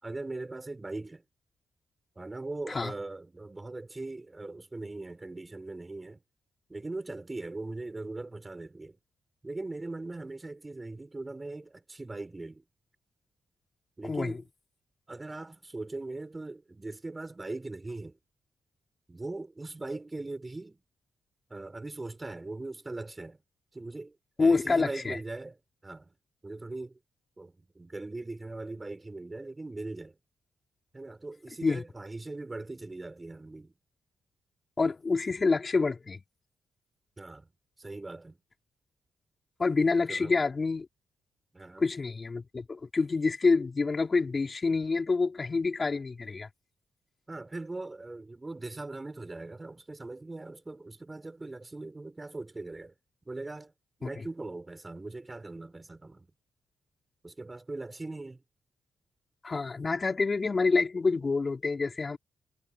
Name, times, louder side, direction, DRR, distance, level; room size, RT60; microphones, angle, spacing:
voice 1, 0.0-1.2 2.2-6.2 6.7-9.0 9.4-12.6 14.0-14.5 15.1-18.2 19.1-20.8 21.5-23.4 23.7-25.6 25.8-26.1 26.4-27.0 27.4-30.2 30.9-33.7 37.2-37.5 37.8-38.4 40.0-40.4 41.5-41.9 47.3-52.9 53.2-53.7 54.0-56.3 57.2-58.4, right 2 dB, 25° right, 6.1 m, -40 dB
voice 2, 14.0-14.4 24.4-25.2 31.6-31.8 34.8-36.2 39.6-40.9 41.8-46.5 54.0-54.1 59.4-62.2, left 4 dB, 40° left, 3.7 m, -27 dB
supercardioid pair, 45°, 0 cm